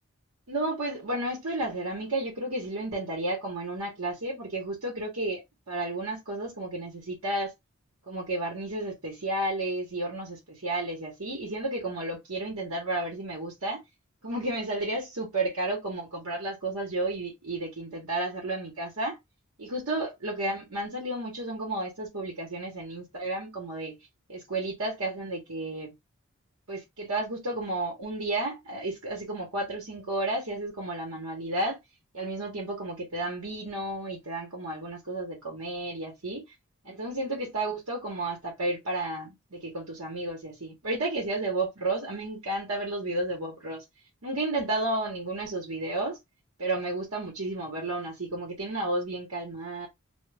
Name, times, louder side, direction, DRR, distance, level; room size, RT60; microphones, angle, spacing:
voice 1, 0.5-5.4 5.7-7.5 8.1-13.8 14.2-19.2 19.6-24.0 24.3-25.9 26.7-31.8 32.1-36.4 36.8-43.8 44.2-46.2 46.6-49.9, right 2 dB, 75° right, 1.2 m, -32 dB
2.5 x 2.4 x 3.3 m
head